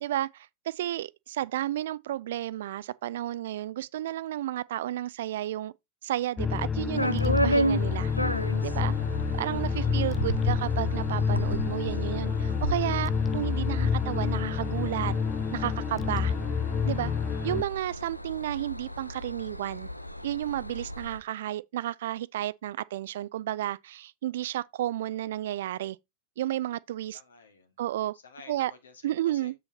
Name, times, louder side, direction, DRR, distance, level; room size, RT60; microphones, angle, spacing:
voice 1, 0.0-5.7 6.0-8.1 8.6-8.9 9.4-15.1 15.5-16.3 16.8-17.1 17.4-19.9 20.2-26.0 26.4-27.2 27.8-28.1 28.5-28.7 29.0-29.5, right 13 dB, 55° right, 0.3 m, -32 dB
sound 1, 6.4-17.6, left 6 dB, 20° left, 0.3 m, -28 dB
sound 2, 7.0-21.2, right 1 dB, 90° left, 0.5 m, -33 dB
voice 2, 9.3-9.9 27.1-27.8 28.1-29.5, left 4 dB, 70° left, 1.7 m, -53 dB
7.6 x 6.9 x 2.9 m
figure-of-eight pair, 90°, 0 cm